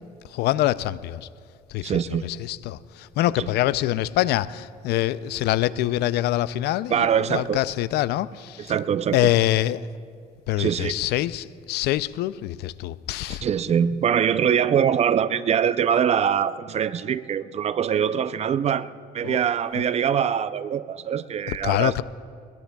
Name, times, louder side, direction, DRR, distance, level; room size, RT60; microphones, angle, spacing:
voice 1, 0.3-1.3 1.7-8.7 9.1-9.9 10.5-13.4 19.2-19.4 19.7-19.9 21.5-22.0, left 14 dB, 75° left, 17 dB, 0.4 m, -25 dB
voice 2, 1.8-2.3 3.4-3.5 6.9-7.6 8.6-9.3 10.6-11.0 13.3-21.9, right 8 dB, 40° right, 14 dB, 0.5 m, -23 dB
21.5 x 20.5 x 2.3 m, 2.3 s
cardioid pair, 110°, 17 cm